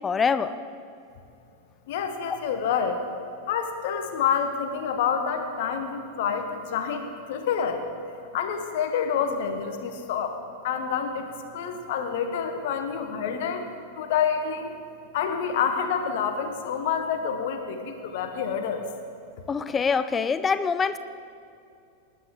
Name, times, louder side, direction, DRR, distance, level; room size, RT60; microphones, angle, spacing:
voice 1, 0.0-0.6 19.5-21.0, left 5 dB, 20° left, 13 dB, 0.5 m, -24 dB
voice 2, 1.9-3.0 3.5-7.8 8.3-10.4 10.6-13.6 14.0-14.8 15.1-18.8, left 7 dB, 50° left, 6 dB, 1.1 m, -28 dB
19.5 x 10.0 x 3.7 m, 2.5 s
figure-of-eight pair, 90°, 0 cm